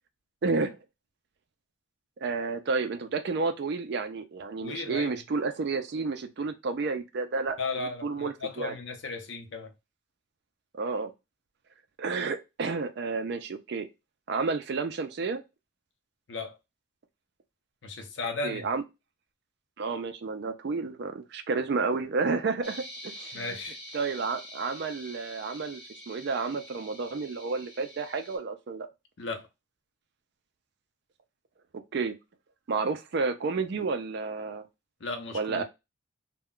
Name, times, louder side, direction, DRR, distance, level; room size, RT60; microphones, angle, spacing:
voice 1, 0.4-0.8 2.2-8.8 10.7-11.1 12.0-13.9 14.3-15.4 18.4-18.8 19.8-23.4 23.9-25.8 26.1-28.9 31.9-32.2 32.7-34.7 35.3-35.6, right 4 dB, 55° right, 0.4 m, -31 dB
voice 2, 4.6-5.2 7.6-9.7 16.3-16.6 17.8-18.6 23.3-23.8 29.2-29.5 35.0-35.6, left 3 dB, 60° left, 0.6 m, -35 dB
sound 1, 22.6-28.4, equal, ahead, 0.9 m, -46 dB
2.2 x 2.1 x 3.6 m
head